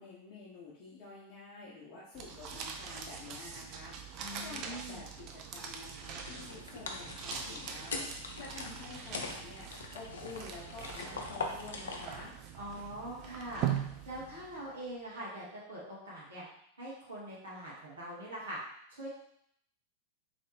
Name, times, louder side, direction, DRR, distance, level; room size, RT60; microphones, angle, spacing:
voice 1, 0.0-9.7 9.9-12.4, left 3 dB, 35° left, -8 dB, 1.0 m, -49 dB
sound 1, 2.1-14.7, right 8 dB, 40° right, 0.5 m, -42 dB
voice 2, 4.2-5.0 12.5-13.7 14.0-16.4 16.8-18.6 19.0-19.1, right 1 dB, 65° right, -7 dB, 1.6 m, -43 dB
sound 2, 6.2-12.3, left 3 dB, 65° left, 0.6 m, -42 dB
3.9 x 3.1 x 3.3 m, 0.71 s
figure-of-eight pair, 90°, 0 cm